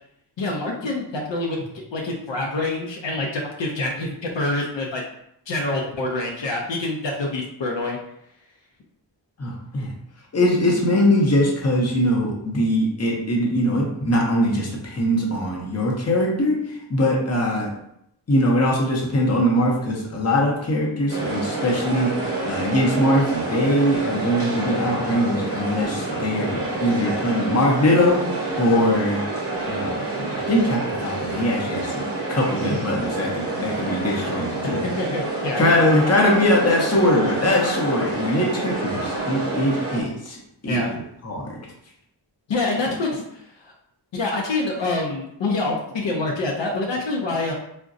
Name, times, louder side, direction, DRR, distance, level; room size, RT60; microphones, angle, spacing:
voice 1, 0.4-1.6 1.9-5.0 5.5-8.0 26.4-26.7 32.6-32.8 34.6-35.6 40.6-41.0 42.5-43.7 44.1-47.5, left 2 dB, 70° left, -1 dB, 0.6 m, -26 dB
voice 2, 9.4-9.9 10.3-17.7 18.3-22.1 22.4-29.2 29.7-34.9 35.6-40.4 40.6-41.6, left 1 dB, 35° left, -1 dB, 0.7 m, -22 dB
sound 1, 21.1-40.0, right 2 dB, 30° right, 0.8 m, -28 dB
3.7 x 2.2 x 2.5 m, 0.76 s
wide cardioid pair, 95°, 46 cm